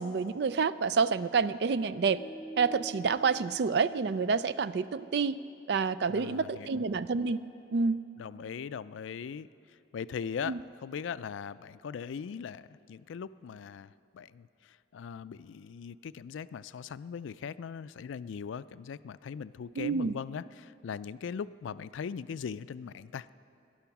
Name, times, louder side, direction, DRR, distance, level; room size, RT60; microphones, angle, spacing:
voice 1, 0.0-2.2 2.6-5.4 5.7-7.4 7.7-8.0 10.4-10.6 19.8-20.1, right 5 dB, 60° right, 15 dB, 0.4 m, -28 dB
sound 1, 2.1-5.2, right 4 dB, 90° right, 4.0 m, -47 dB
voice 2, 6.1-6.8 8.2-9.5 9.9-23.3, left 6 dB, 90° left, 16 dB, 0.4 m, -40 dB
18.5 x 11.5 x 5.9 m, 2.8 s
head